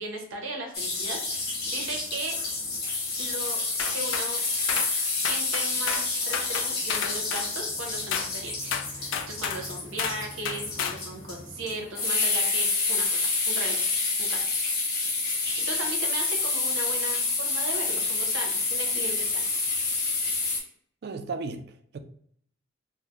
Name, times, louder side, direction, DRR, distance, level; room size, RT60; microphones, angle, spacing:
voice 1, 0.0-2.4 3.2-3.6 3.9-4.4 5.2-13.8 14.2-14.5 15.2-19.4, right 1 dB, 90° right, 0.9 m, -37 dB
sound 1, 0.7-20.6, left 3 dB, 50° left, 1.0 m, -28 dB
sound 2, 3.8-4.3 4.7-4.9 5.2-6.1 6.3-7.5 8.1-8.3 8.7-9.6 10.0-10.2 10.5-11.0, left 7 dB, 75° left, 0.3 m, -31 dB
voice 2, 21.0-22.0, right 4 dB, 55° right, 0.3 m, -35 dB
3.7 x 2.1 x 2.8 m
head